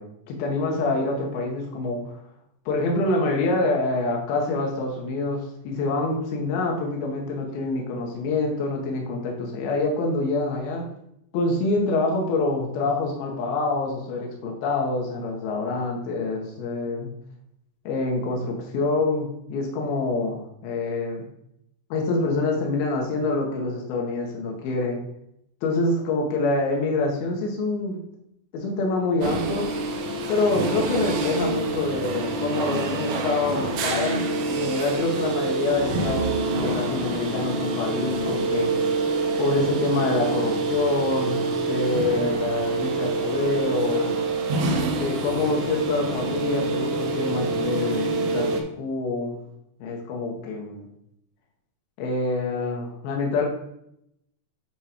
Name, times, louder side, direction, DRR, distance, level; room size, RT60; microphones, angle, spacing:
voice 1, 0.0-2.2 2.7-10.8 11.3-17.1 17.9-21.2 21.9-25.0 25.6-28.0 28.5-29.7 30.3-38.7 39.4-44.2 45.0-49.4 49.8-50.9 52.0-53.5, left 3 dB, 75° left, 0 dB, 2.9 m, -26 dB
sound 1, 29.2-48.6, right 3 dB, 85° right, 1.6 m, -26 dB
8.6 x 3.1 x 4.9 m, 0.76 s
omnidirectional pair, 4.4 m